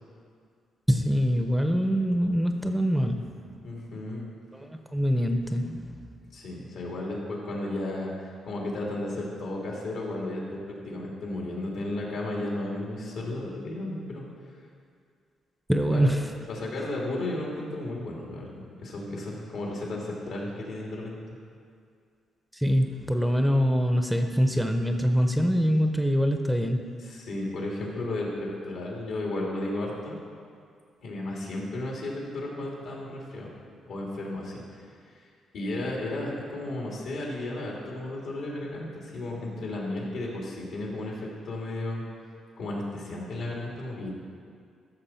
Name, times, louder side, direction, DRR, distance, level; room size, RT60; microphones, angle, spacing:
voice 1, 0.9-3.3 4.5-6.0 15.7-16.3 22.5-26.8, equal, 5° right, 5 dB, 0.7 m, -24 dB
voice 2, 3.6-4.2 6.3-10.4 10.8-14.2 15.9-16.1 16.5-21.1 27.0-30.2 31.0-33.5 33.8-34.9 35.5-42.0 42.6-44.1, left 1 dB, 75° left, -3 dB, 2.8 m, -34 dB
14.0 x 6.5 x 4.4 m, 2.3 s
cardioid pair, 90°, 0 cm